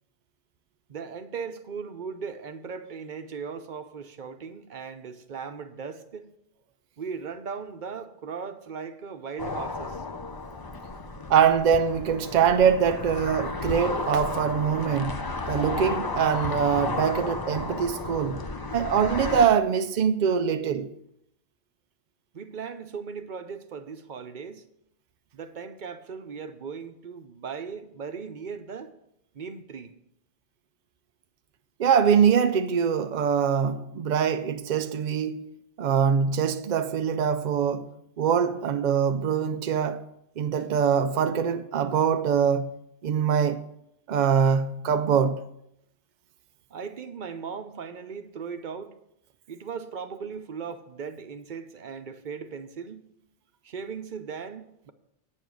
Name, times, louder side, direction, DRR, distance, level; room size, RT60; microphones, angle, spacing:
voice 1, 0.9-6.3 7.0-10.0 22.3-24.6 25.3-28.9 29.3-29.9 46.7-49.0 49.5-53.1 53.6-54.9, right 6 dB, 45° right, 0.8 m, -38 dB
sound 1, 9.4-19.5, left 3 dB, 30° left, 0.5 m, -33 dB
voice 2, 11.3-18.5 18.7-20.9 31.8-35.5 35.8-40.0 40.4-42.7 43.0-43.6 44.1-45.4, right 7 dB, 65° right, 0.4 m, -23 dB
9.3 x 7.2 x 6.3 m
omnidirectional pair, 1.2 m